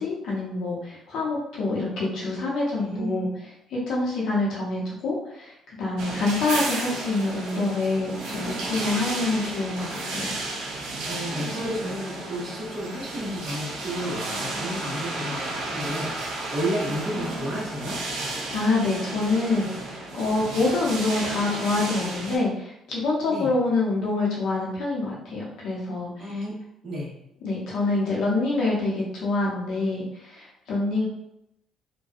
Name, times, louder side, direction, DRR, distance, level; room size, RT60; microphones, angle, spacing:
voice 1, 0.0-3.3 3.7-5.5 5.8-10.4 18.5-26.3 27.4-31.1, left 2 dB, 55° left, -5 dB, 0.7 m, -26 dB
voice 2, 2.7-3.3 11.0-18.0 23.2-23.5 26.2-26.5 26.8-27.1, equal, 35° right, -7 dB, 0.9 m, -32 dB
sound 1, 6.0-22.4, right 2 dB, 90° right, 0.6 m, -33 dB
2.6 x 2.2 x 2.4 m, 0.81 s
cardioid pair, 180°, 0 cm